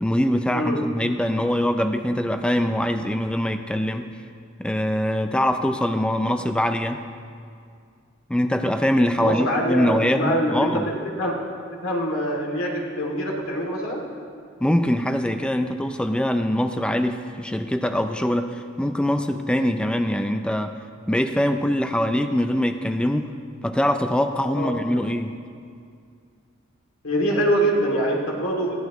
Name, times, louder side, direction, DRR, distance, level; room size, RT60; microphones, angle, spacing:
voice 1, 0.0-4.1 4.6-7.0 8.3-10.9 14.6-20.8 21.1-23.3 23.6-25.4, equal, 5° left, 7 dB, 0.4 m, -23 dB
voice 2, 9.2-11.3 11.8-14.0 24.5-24.7 27.0-28.8, equal, 80° left, -1 dB, 2.7 m, -24 dB
20.5 x 15.5 x 3.1 m, 2.3 s
head